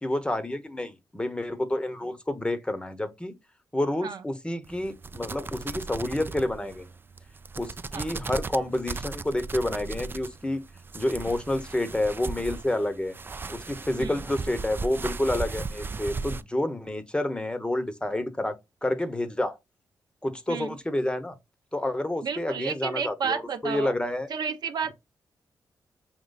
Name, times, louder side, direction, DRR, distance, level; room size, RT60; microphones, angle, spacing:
voice 1, 0.0-3.3 3.7-6.9 7.6-10.6 10.9-13.2 13.5-18.6 18.8-19.6 20.2-21.4 21.7-24.3, left 1 dB, 15° left, 0.8 m, -29 dB
sound 1, 4.6-16.4, right 4 dB, 30° right, 0.3 m, -37 dB
voice 2, 22.2-23.9 24.3-24.9, right 6 dB, 65° right, 0.6 m, -31 dB
5.2 x 2.9 x 2.3 m
cardioid pair, 75°, 8 cm